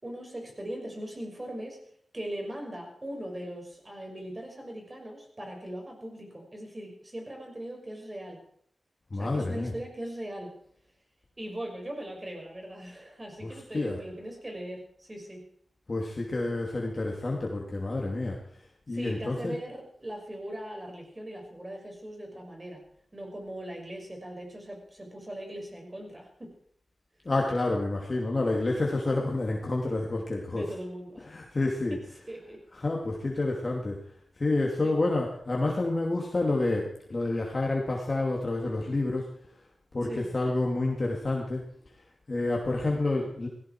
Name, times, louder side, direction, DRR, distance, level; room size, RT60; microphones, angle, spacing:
voice 1, 0.0-1.8 2.1-8.4 9.1-10.6 11.4-15.5 18.9-22.8 23.1-26.5 30.5-31.3 31.9-32.0 32.3-32.6 34.8-35.0 40.0-40.4, right 1 dB, 25° right, 2 dB, 6.0 m, -40 dB
voice 2, 9.1-9.7 13.4-14.0 15.9-18.4 18.9-19.6 27.2-30.7 31.2-32.1 32.7-34.0 34.4-39.3 39.9-41.6 42.3-43.5, left 2 dB, 35° left, -1 dB, 2.7 m, -29 dB
17.5 x 16.5 x 4.7 m, 0.65 s
wide cardioid pair, 85°, 0 cm